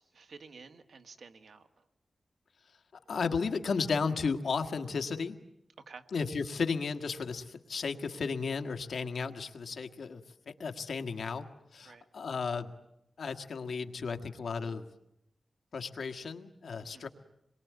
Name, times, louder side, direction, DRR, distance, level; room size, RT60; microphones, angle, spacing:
voice 1, 0.0-1.8 5.9-6.1 11.9-12.1 16.8-17.1, right 4 dB, 75° right, 7 dB, 1.7 m, -52 dB
voice 2, 2.9-5.4 6.1-11.4 11.7-12.7 13.2-14.9 15.7-17.1, left 5 dB, 80° left, 7 dB, 1.6 m, -34 dB
27.5 x 22.5 x 9.5 m, 0.83 s
wide cardioid pair, 155°, 0 cm